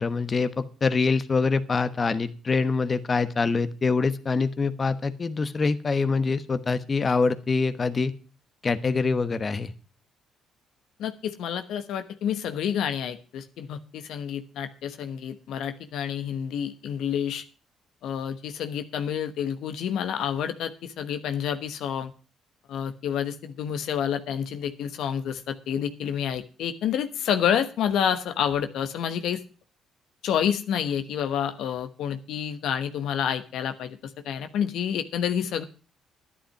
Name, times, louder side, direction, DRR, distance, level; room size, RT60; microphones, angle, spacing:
voice 1, 0.0-8.1 8.6-9.7, left 4 dB, 35° left, 11 dB, 1.1 m, -25 dB
voice 2, 11.0-17.4 18.0-22.1 22.7-29.4 30.2-34.0 34.2-35.6, left 8 dB, 75° left, 9 dB, 1.1 m, -29 dB
11.5 x 10.5 x 5.7 m, 0.35 s
supercardioid pair, 70°, 0 cm